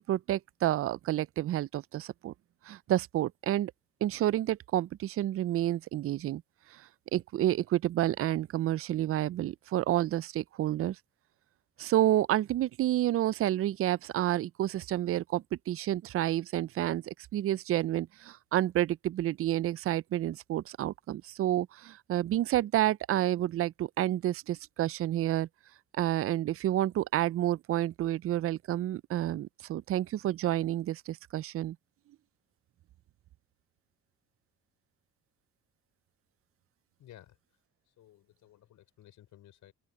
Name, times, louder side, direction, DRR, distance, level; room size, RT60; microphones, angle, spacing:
voice 1, 0.0-2.3 2.7-3.7 4.0-6.4 6.7-6.8 7.1-11.0 11.8-25.5 26.0-31.8, right 13 dB, 50° right, 0.4 m, -29 dB
voice 2, 37.0-37.4 37.9-39.7, left 12 dB, 80° left, 5.3 m, -56 dB
open air
cardioid pair, 90°, 30 cm